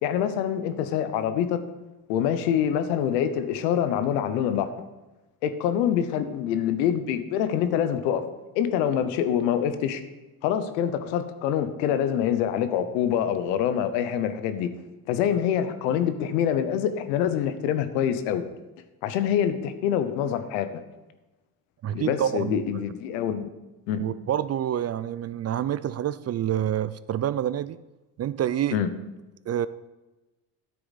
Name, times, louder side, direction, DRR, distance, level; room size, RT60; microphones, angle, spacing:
voice 1, 0.0-1.6 2.1-4.7 5.4-8.2 8.6-10.0 10.4-14.7 15.1-18.4 19.0-20.7 21.9-23.5 23.9-24.0 28.7-28.9, left 9 dB, 90° left, 11 dB, 0.9 m, -25 dB
voice 2, 21.8-22.6 24.0-27.8 28.2-28.8 29.5-29.7, right 11 dB, 35° right, 15 dB, 0.4 m, -27 dB
9.7 x 7.7 x 4.1 m, 1.1 s
supercardioid pair, 65°, 48 cm